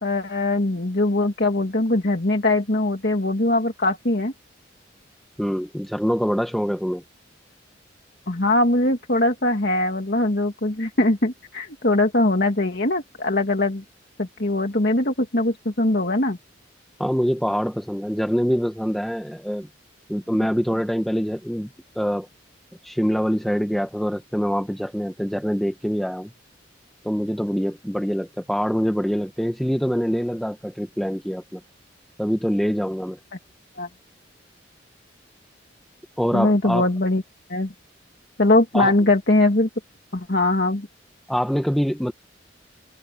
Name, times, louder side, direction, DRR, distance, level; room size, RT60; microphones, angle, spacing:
voice 1, 0.0-4.3 8.3-13.8 14.2-16.4 33.8-33.9 36.3-37.2 37.5-37.7 38.4-39.7 40.1-40.9, left 2 dB, 55° left, 2.1 m, -21 dB
voice 2, 5.4-7.0 17.0-19.7 20.1-21.7 21.9-22.3 22.8-26.3 27.0-31.6 32.2-33.2 36.2-36.9 38.7-38.9 41.3-42.1, equal, ahead, 1.0 m, -24 dB
head